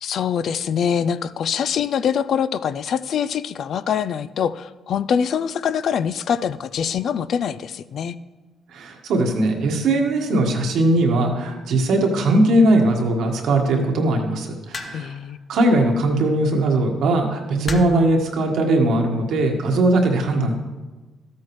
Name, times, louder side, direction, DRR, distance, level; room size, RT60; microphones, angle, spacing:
voice 1, 0.0-8.2 14.9-15.4, left 8 dB, 65° left, 15 dB, 0.4 m, -24 dB
voice 2, 8.7-15.1 15.5-20.5, right 1 dB, 75° right, 2 dB, 1.5 m, -19 dB
sound 1, 14.7-15.2 16.5-16.7 17.6-18.1 19.1-19.4, left 2 dB, 35° left, 0.8 m, -33 dB
13.5 x 8.5 x 3.2 m, 1.2 s
cardioid pair, 90°, 0 cm